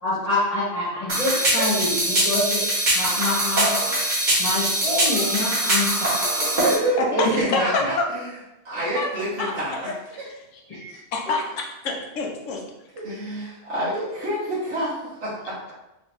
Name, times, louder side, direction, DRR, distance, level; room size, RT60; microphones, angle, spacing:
voice 1, 0.0-2.6 3.0-3.7 4.4-6.1 7.1-7.6 10.7-11.0, left 2 dB, 30° left, -8 dB, 1.2 m, -26 dB
sound 1, 1.1-6.8, right 1 dB, 40° right, 1.0 m, -22 dB
voice 2, 2.1-2.5 4.0-4.2 4.9-6.5 7.0-8.1 8.9-10.6 10.9-12.7 13.9-14.3, left 3 dB, 85° left, 1 dB, 1.0 m, -30 dB
voice 3, 5.5-5.9 6.6-7.0 7.4-7.9 8.6-9.8 13.0-15.7, right 1 dB, 65° right, -10 dB, 1.4 m, -27 dB
3.2 x 3.1 x 3.0 m, 0.94 s
omnidirectional pair, 1.3 m